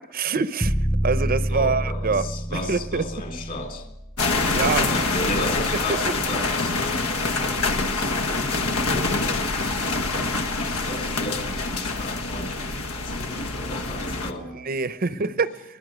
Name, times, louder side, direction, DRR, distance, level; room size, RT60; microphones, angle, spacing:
voice 1, 0.1-0.7 1.0-2.2 2.5-3.0 4.5-4.9 14.3-15.5, right 4 dB, 40° right, 0.7 m, -25 dB
sound 1, 0.6-4.7, right 1 dB, 5° left, 0.7 m, -27 dB
voice 2, 1.5-3.9 4.4-14.6 15.1-15.4, left 1 dB, 40° left, 3.1 m, -35 dB
sound 2, 4.2-14.3, left 3 dB, 85° left, 1.6 m, -25 dB
23.5 x 19.5 x 6.4 m
head